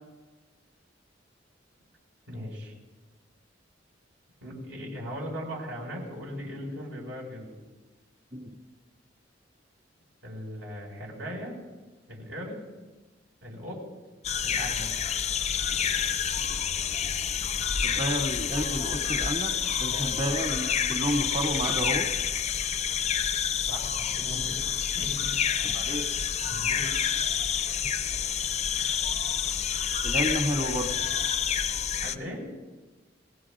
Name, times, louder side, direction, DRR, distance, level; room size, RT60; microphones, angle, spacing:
voice 1, 2.3-2.7 4.4-7.6 10.2-11.6 12.1-12.6 13.4-13.8 14.4-14.9 19.8-20.2 23.7-24.6 25.0-25.1 26.5-26.9 32.0-32.4, equal, 75° right, -2 dB, 5.4 m, -38 dB
sound 1, 14.2-32.2, left 8 dB, 35° left, 0.5 m, -28 dB
voice 2, 17.8-19.5 19.8-22.1 25.6-26.1 30.0-30.9, equal, 40° right, 0 dB, 2.3 m, -30 dB
28.5 x 17.0 x 2.5 m, 1.2 s
head